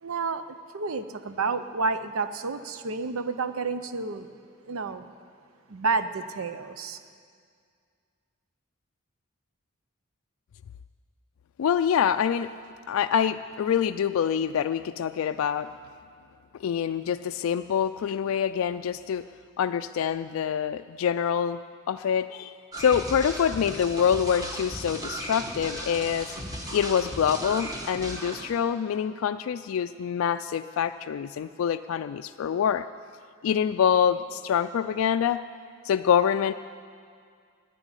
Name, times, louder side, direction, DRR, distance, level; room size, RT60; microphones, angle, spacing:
voice 1, 0.0-4.3 4.7-5.1 5.7-7.0, right 4 dB, 85° right, 11 dB, 0.7 m, -30 dB
voice 2, 11.6-12.5 12.9-15.7 16.5-19.3 19.6-21.6 21.9-26.3 26.7-32.9 33.4-35.5 35.9-36.5, left 8 dB, 75° left, 9 dB, 0.3 m, -26 dB
sound 1, 22.7-28.4, right 1 dB, 15° right, 1.4 m, -36 dB
11.0 x 9.8 x 9.8 m, 2.2 s
head